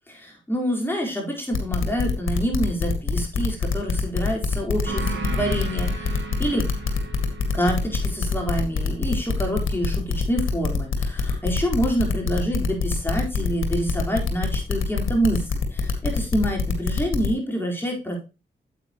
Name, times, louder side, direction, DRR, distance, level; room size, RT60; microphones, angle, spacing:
voice 1, 0.2-6.7 7.5-18.2, equal, 10° left, 0 dB, 4.4 m, -27 dB
sound 1, 1.5-17.3, left 5 dB, 75° left, 2.1 m, -24 dB
sound 2, 4.9-10.0, right 4 dB, 65° right, 2.5 m, -36 dB
8.8 x 8.4 x 3.1 m, 0.29 s
cardioid pair, 50°, 21 cm